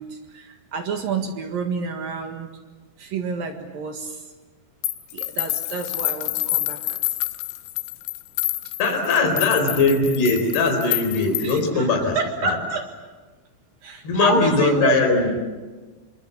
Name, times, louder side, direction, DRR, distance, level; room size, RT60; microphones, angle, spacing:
voice 1, 0.0-2.5 3.0-4.2 5.1-7.0 8.9-9.4 11.4-11.9 12.2-12.9 13.8-15.1, right 4 dB, 60° right, 5 dB, 3.0 m, -29 dB
sound 1, 4.8-11.7, left 18 dB, 90° left, 3.5 m, -28 dB
voice 2, 8.8-12.2 12.4-12.6 14.0-15.3, left 3 dB, 60° left, 4 dB, 6.4 m, -20 dB
27.0 x 25.0 x 7.5 m, 1.3 s
omnidirectional pair, 5.4 m